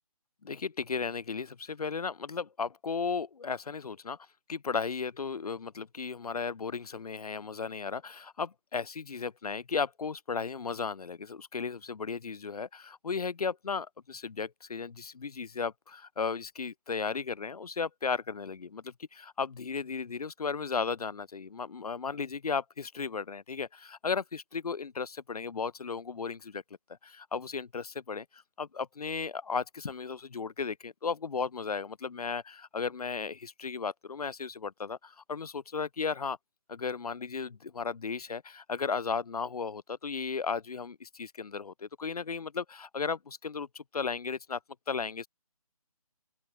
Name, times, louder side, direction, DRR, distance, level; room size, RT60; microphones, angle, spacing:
voice 1, 0.4-4.2 4.5-26.6 27.0-36.4 36.7-44.6 44.9-45.3, left 5 dB, 75° left, 0.9 m, -35 dB
open air
hypercardioid pair, 175°, 19 cm